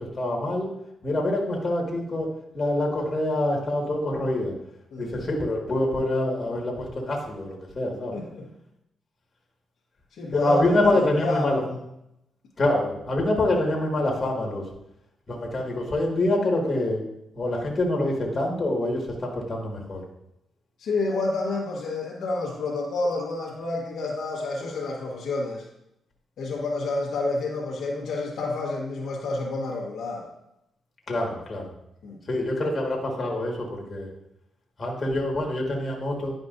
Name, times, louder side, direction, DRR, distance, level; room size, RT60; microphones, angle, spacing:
voice 1, 0.2-0.7 1.0-2.3 2.5-4.5 5.0-8.2 10.3-11.6 12.6-14.6 15.3-17.0 17.4-20.0 31.1-31.6 32.3-34.1 34.8-36.3, left 1 dB, 35° left, -1 dB, 1.8 m, -25 dB
voice 2, 8.1-8.5 10.2-11.8 20.8-25.6 26.4-30.3 32.0-32.2, left 2 dB, 75° left, -3 dB, 1.4 m, -29 dB
10.0 x 5.1 x 2.6 m, 0.81 s
cardioid pair, 85°, 0 cm